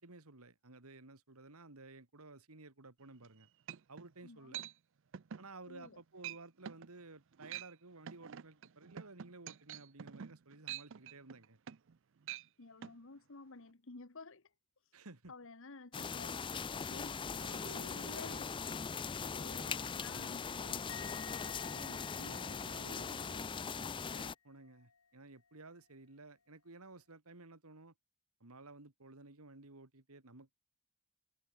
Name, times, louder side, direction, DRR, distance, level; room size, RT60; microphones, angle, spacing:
voice 1, 0.0-3.5 3.9-4.6 5.4-11.6 14.9-15.3 17.4-18.5 19.6-19.9 21.6-27.9 28.4-30.6, right 3 dB, 75° right, 2.2 m, -55 dB
sound 1, 3.2-3.3 3.7-4.1 4.5-4.7 5.1-5.5 5.8-6.0 6.2-6.4 6.6-6.9 7.3-7.7 8.1-11.9 12.2-12.5 12.8-12.9, right 10 dB, 60° right, 0.5 m, -46 dB
voice 2, 4.2-4.6 5.7-6.0 12.6-14.4 15.3-16.5 16.8-18.8 19.3-19.6 19.9-21.0, left 3 dB, 60° left, 1.3 m, -53 dB
sound 2, 15.9-24.3, left 6 dB, 20° left, 0.4 m, -40 dB
Musical instrument, 20.9-24.3 24.5-25.0, left 7 dB, 85° left, 3.9 m, -54 dB
head